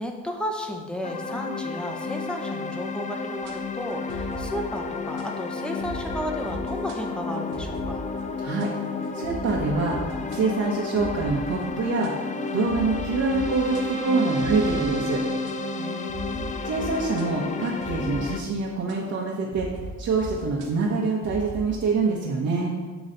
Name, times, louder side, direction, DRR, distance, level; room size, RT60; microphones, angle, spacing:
voice 1, 0.0-8.1 15.8-16.5, equal, 5° left, 2 dB, 0.8 m, -33 dB
sound 1, 1.0-18.4, left 4 dB, 25° left, 0.4 m, -32 dB
sound 2, 3.4-19.0 19.5-21.8, right 1 dB, 85° right, 1.1 m, -40 dB
voice 2, 8.4-8.7 9.1-10.0 10.3-12.1 12.5-15.2 16.6-19.7 20.0-22.7, right 4 dB, 55° right, -4 dB, 1.0 m, -25 dB
Wind instrument woodwind instrument, 12.2-16.5, right 2 dB, 35° right, 0.5 m, -32 dB
7.9 x 3.1 x 3.9 m, 1.3 s
cardioid pair, 90°, 30 cm